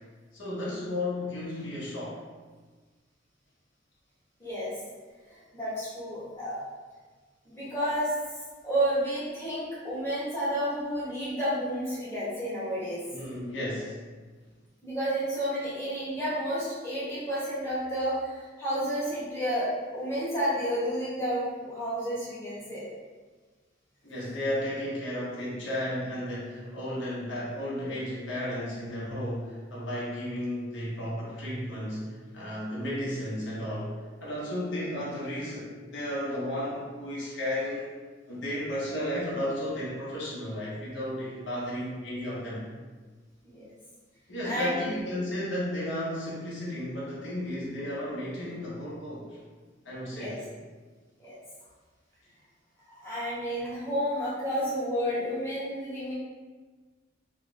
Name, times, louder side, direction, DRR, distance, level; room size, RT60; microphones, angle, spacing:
voice 1, 0.3-2.2 13.1-14.0 24.0-37.8 38.3-42.7 44.3-49.3 49.8-50.4, left 1 dB, 75° left, -7 dB, 1.1 m, -33 dB
voice 2, 4.4-4.8 5.3-6.6 7.4-8.1 8.6-13.0 14.8-22.8 43.4-43.7 44.4-45.0 50.1-50.3 51.2-51.3 53.0-56.1, equal, 15° left, -10 dB, 1.1 m, -31 dB
3.2 x 2.4 x 3.1 m, 1.4 s
head